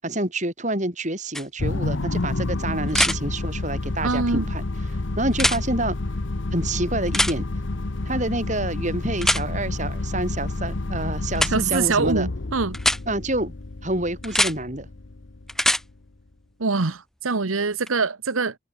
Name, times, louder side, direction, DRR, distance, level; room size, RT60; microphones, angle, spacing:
voice 1, 0.0-4.6 5.2-6.0 6.5-7.4 8.1-12.3 13.1-13.5 13.8-14.9, right 1 dB, 35° right, 7.3 m, -27 dB
sound 1, 1.3-1.4 2.9-3.2 5.3-5.6 7.1-7.3 9.2-9.4 11.3-11.5 12.7-13.0 14.2-14.5 15.5-15.8 17.9-18.0, left 1 dB, ahead, 0.6 m, -21 dB
sound 2, 1.6-16.1, left 2 dB, 65° left, 1.0 m, -29 dB
voice 2, 4.0-4.4 11.5-12.8 16.6-18.6, right 4 dB, 85° right, 1.2 m, -24 dB
head